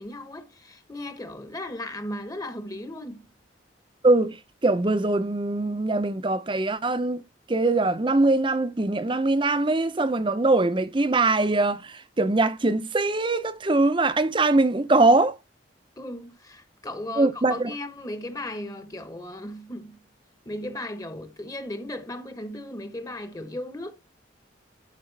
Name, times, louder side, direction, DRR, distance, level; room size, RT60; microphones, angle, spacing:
voice 1, 0.0-3.3 16.0-20.0 20.4-23.9, left 1 dB, 20° left, 1.1 m, -36 dB
voice 2, 4.0-4.4 4.6-7.2 7.5-15.3 17.2-17.7, right 2 dB, 25° right, 0.7 m, -22 dB
12.5 x 4.9 x 3.3 m
head